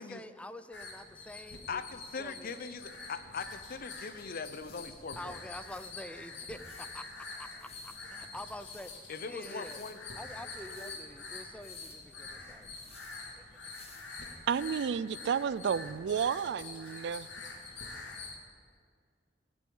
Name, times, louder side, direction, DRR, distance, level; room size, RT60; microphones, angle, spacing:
voice 1, 0.0-1.8 2.2-2.5 5.2-7.1 7.4-8.9 9.3-9.8 10.1-12.7, left 1 dB, 5° left, 11 dB, 0.5 m, -46 dB
sound 1, 0.7-18.4, left 3 dB, 85° left, 1.8 m, -46 dB
voice 2, 1.7-5.4 9.1-10.2 10.8-11.0, left 5 dB, 55° left, 12 dB, 0.7 m, -41 dB
sound 2, 4.6-4.9 5.6-5.9 6.5-6.9 7.6-8.0 8.6-9.0 9.6-9.9 10.6-11.0 11.6-12.0 12.7-13.2 13.7-14.1 14.8-14.9, left 5 dB, 35° left, 1.8 m, -56 dB
voice 3, 14.5-17.3, right 7 dB, 65° right, 19 dB, 0.3 m, -31 dB
17.5 x 6.2 x 8.8 m, 2.1 s
head